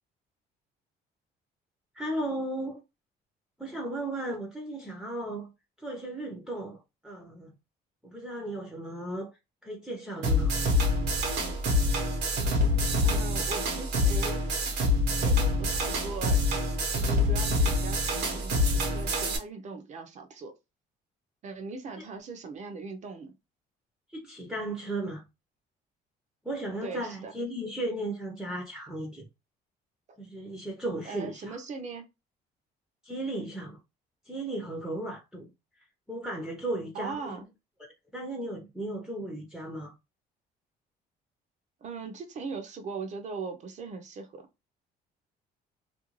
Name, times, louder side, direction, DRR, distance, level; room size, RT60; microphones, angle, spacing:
voice 1, 1.9-2.8 3.6-5.5 5.8-7.5 8.0-9.3 9.6-10.6 13.1-13.2 24.1-25.2 26.4-29.3 30.2-31.6 33.0-33.8 34.3-35.5 36.1-37.4 38.1-40.0, right 1 dB, 5° right, 0.6 m, -35 dB
sound 1, 10.2-19.4, left 1 dB, 80° right, 0.9 m, -26 dB
voice 2, 13.0-14.4 15.2-16.4 17.1-20.5 21.4-23.3 26.8-27.3 30.1-30.2 31.0-32.1 36.9-37.5 41.8-44.5, right 4 dB, 45° right, 0.6 m, -39 dB
2.5 x 2.2 x 3.0 m
cardioid pair, 110°, 17 cm